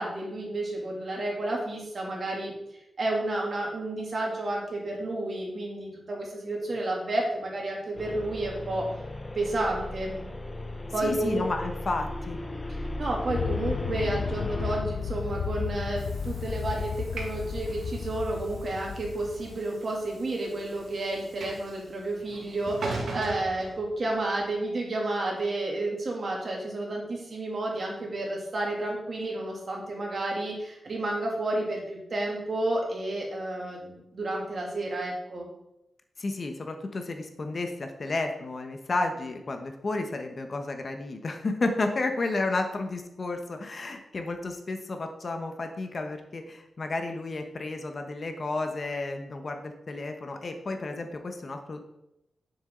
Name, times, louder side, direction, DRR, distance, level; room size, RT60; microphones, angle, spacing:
voice 1, 0.0-2.5 3.0-8.9 9.3-10.1 10.9-11.4 13.0-35.5, right 2 dB, 50° right, -2 dB, 2.7 m, -31 dB
sound 1, 8.0-14.8, left 1 dB, 20° left, 0.9 m, -37 dB
voice 2, 11.0-12.4 36.2-52.0, left 2 dB, 45° left, 5 dB, 1.1 m, -32 dB
Aircraft, 13.3-19.6, left 6 dB, 80° left, 0.4 m, -33 dB
Train / Sliding door, 15.1-24.4, right 3 dB, 80° right, 2.0 m, -41 dB
9.7 x 7.2 x 3.9 m, 0.84 s
wide cardioid pair, 110°, 0 cm